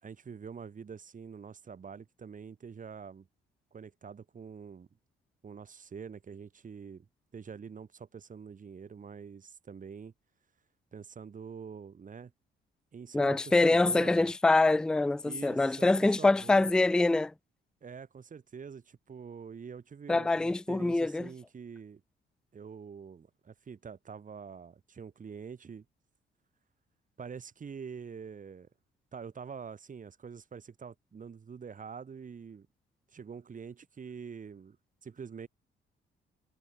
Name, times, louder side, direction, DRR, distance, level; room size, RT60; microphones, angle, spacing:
voice 1, 0.0-3.3 3.7-4.9 5.4-7.1 7.3-10.1 10.9-12.3 12.9-14.3 15.2-16.7 17.8-22.0 22.5-25.8 27.2-28.7 29.1-32.7 33.1-34.8 35.0-35.5, right 6 dB, 40° right, 3.6 m, -45 dB
voice 2, 13.1-17.3 20.1-21.3, left 2 dB, 5° left, 0.4 m, -25 dB
cardioid pair, 90°, 20 cm